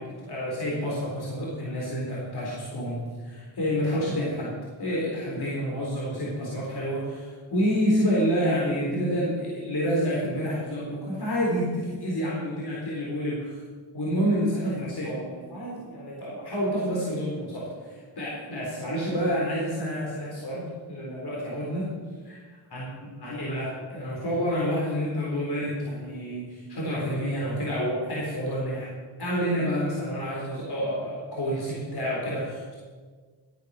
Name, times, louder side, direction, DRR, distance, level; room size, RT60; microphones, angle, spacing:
voice 1, 0.0-13.6 13.9-21.9 22.2-22.4 22.7-28.9 29.2-32.8, equal, 55° left, -5 dB, 4.0 m, -29 dB
14.0 x 9.4 x 6.6 m, 1.5 s
cardioid pair, 80°, 48 cm